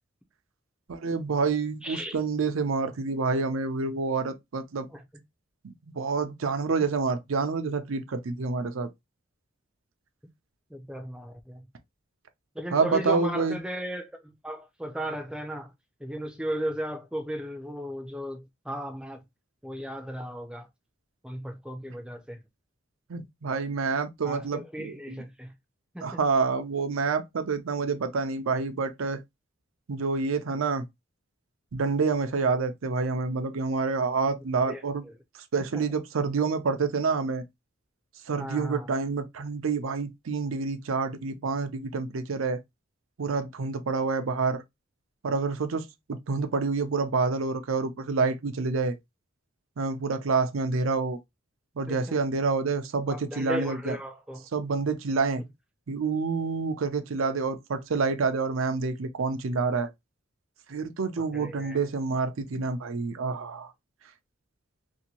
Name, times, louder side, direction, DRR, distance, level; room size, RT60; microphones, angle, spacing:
voice 1, 0.9-4.9 5.6-8.9 12.7-13.6 23.1-25.2 26.0-29.2 29.9-30.9 31.7-35.0 35.5-37.4 38.3-42.6 43.2-44.6 45.2-49.0 49.8-51.2 51.8-54.0 54.5-55.4 55.9-59.9 60.7-63.7, right 4 dB, 85° right, 0.5 m, -28 dB
voice 2, 1.8-2.2 4.9-5.0 6.8-6.9 10.7-11.7 12.5-15.7 16.0-19.2 19.6-20.7 21.2-22.4 24.2-25.5 25.9-26.2 34.7-35.1 35.7-35.8 38.4-38.9 51.9-52.2 53.1-54.5 55.4-55.5 61.2-61.8, equal, 5° right, 0.4 m, -36 dB
2.7 x 2.6 x 2.8 m
head